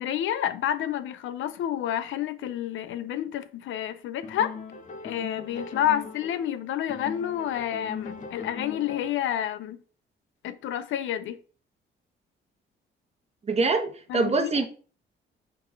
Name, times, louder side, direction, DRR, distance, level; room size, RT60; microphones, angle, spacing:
voice 1, 0.0-4.5 5.0-9.8 10.4-11.4 14.1-14.7, left 10 dB, 75° left, 0.6 m, -29 dB
sound 1, 4.2-6.6 6.9-9.3, left 4 dB, 40° left, 1.3 m, -40 dB
voice 2, 13.5-14.7, right 3 dB, 30° right, 1.0 m, -24 dB
4.4 x 4.1 x 5.7 m
cardioid pair, 90°, 20 cm